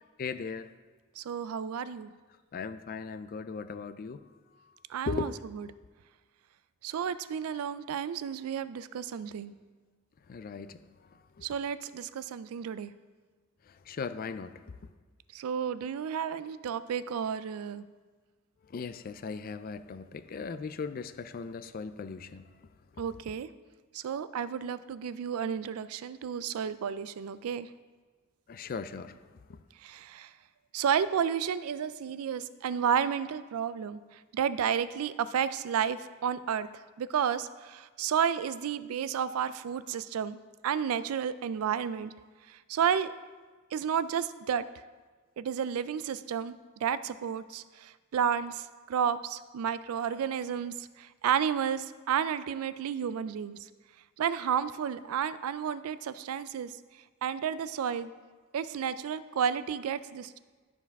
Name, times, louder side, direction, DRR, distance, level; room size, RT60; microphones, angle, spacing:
voice 1, 0.2-0.7 2.5-4.2 5.1-5.4 10.3-10.8 11.1-11.5 13.7-14.8 18.7-22.5 22.9-23.0 28.5-29.2 29.5-29.6, left 5 dB, 45° left, 0.3 m, -38 dB
voice 2, 1.2-2.1 4.9-5.7 6.8-9.5 11.4-12.9 15.3-17.8 23.0-23.5 23.9-27.7 29.8-30.3 30.7-36.7 37.0-40.4 40.6-42.1 42.5-43.1 43.7-44.7 45.4-53.6 54.2-56.7 57.2-58.1 58.5-60.4, right 8 dB, 90° right, 0.3 m, -32 dB
12.5 x 4.6 x 3.5 m
head